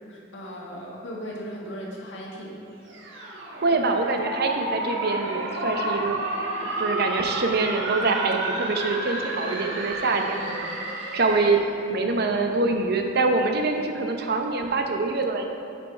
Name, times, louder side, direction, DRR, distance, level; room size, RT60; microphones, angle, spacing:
voice 1, 0.1-2.6, equal, 80° left, -3 dB, 1.7 m, -37 dB
sound 1, 2.9-11.7, right 1 dB, 80° right, 1.2 m, -31 dB
voice 2, 3.6-6.2 6.6-10.8 11.1-11.6 11.9-15.4, right 3 dB, 60° right, 4 dB, 0.7 m, -25 dB
9.2 x 5.4 x 4.5 m, 2.7 s
head